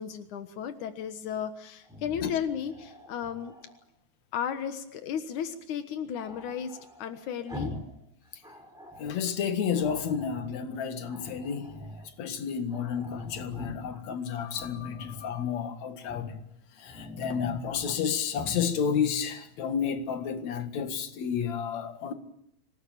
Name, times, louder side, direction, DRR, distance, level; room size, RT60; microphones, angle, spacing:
voice 1, 0.0-3.5 4.3-7.7, left 8 dB, 90° left, 2.9 m, -34 dB
Growling, 1.8-3.8 6.2-8.0 8.3-9.2 9.7-10.6 11.1-12.1 12.4-12.5 12.7-14.0 14.5-15.3 16.0-16.4 16.8-18.0 18.3-18.6, left 1 dB, ahead, 5.4 m, -44 dB
voice 2, 9.0-11.7 12.2-16.3 16.8-22.1, left 7 dB, 70° left, 3.1 m, -31 dB
26.5 x 19.0 x 9.2 m
omnidirectional pair, 3.3 m